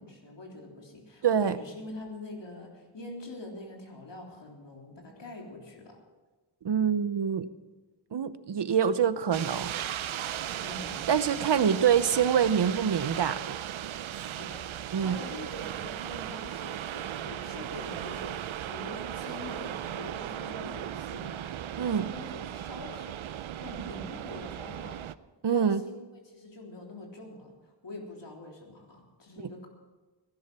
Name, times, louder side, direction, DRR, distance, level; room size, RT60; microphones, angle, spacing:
voice 1, 0.0-6.0 10.6-11.0 11.3-12.0 14.3-23.2 23.6-25.0 25.5-26.0 26.2-29.7, left 2 dB, 65° left, 0 dB, 3.6 m, -45 dB
voice 2, 1.2-1.6 6.6-7.5 8.1-9.7 11.1-13.6 14.9-15.2 21.8-22.1 25.4-25.8, right 8 dB, 60° right, 13 dB, 0.9 m, -25 dB
sound 1, 9.3-25.2, right 11 dB, 85° right, 0.6 m, -37 dB
17.5 x 10.5 x 6.2 m, 1.2 s
wide cardioid pair, 95°, 46 cm